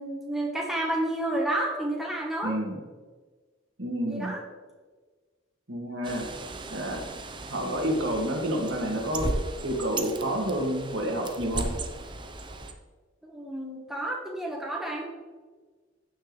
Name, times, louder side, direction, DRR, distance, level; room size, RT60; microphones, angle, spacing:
voice 1, 0.0-2.6 4.1-4.4 13.2-15.1, right 1 dB, ahead, -1 dB, 1.2 m, -30 dB
voice 2, 2.4-2.8 3.8-4.3 5.7-6.3 6.7-7.0 7.5-9.3 9.6-11.7, right 1 dB, 65° right, 0 dB, 2.2 m, -29 dB
Bird, 6.0-12.7, right 2 dB, 25° right, 0.7 m, -36 dB
15.5 x 6.4 x 3.2 m, 1.4 s
head